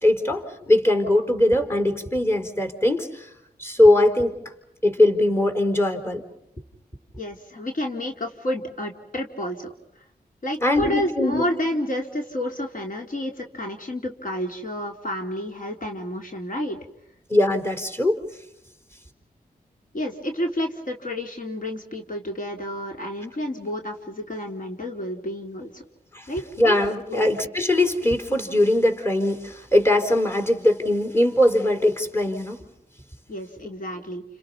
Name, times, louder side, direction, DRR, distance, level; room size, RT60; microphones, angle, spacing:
voice 1, 0.0-3.3 3.6-4.4 4.8-6.2 10.6-11.4 17.3-18.2 26.1-26.3 26.6-32.6, left 1 dB, 15° left, 6 dB, 4.4 m, -21 dB
voice 2, 7.2-9.7 10.4-16.8 19.9-25.8 26.3-26.4 27.1-27.3 33.3-34.2, left 1 dB, 55° left, 2 dB, 3.6 m, -30 dB
30.0 x 29.5 x 5.5 m, 0.78 s
cardioid pair, 60°, 16 cm